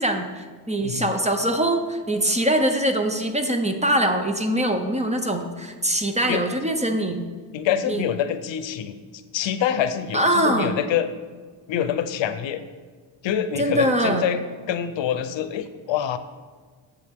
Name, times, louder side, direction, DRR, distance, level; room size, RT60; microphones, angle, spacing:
voice 1, 0.0-7.3 7.9-8.0 10.1-10.8 13.6-14.3, right 1 dB, 15° right, 5 dB, 0.6 m, -23 dB
voice 2, 7.5-11.1 11.7-12.6 13.2-16.2, left 9 dB, 70° left, 11 dB, 0.7 m, -26 dB
9.7 x 7.3 x 3.6 m, 1.5 s
cardioid pair, 135°, 46 cm